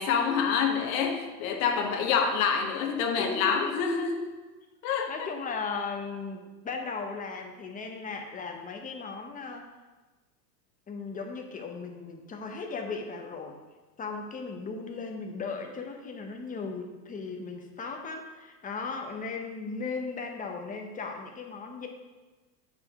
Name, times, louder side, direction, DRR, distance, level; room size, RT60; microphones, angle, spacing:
voice 1, 0.0-4.3 4.8-5.1, left 6 dB, 60° left, 3 dB, 1.3 m, -27 dB
voice 2, 3.2-3.8 5.1-9.7 10.9-13.6 14.0-21.9, left 4 dB, 15° left, 3 dB, 1.0 m, -37 dB
8.8 x 5.5 x 3.7 m, 1.2 s
hypercardioid pair, 110°, 48 cm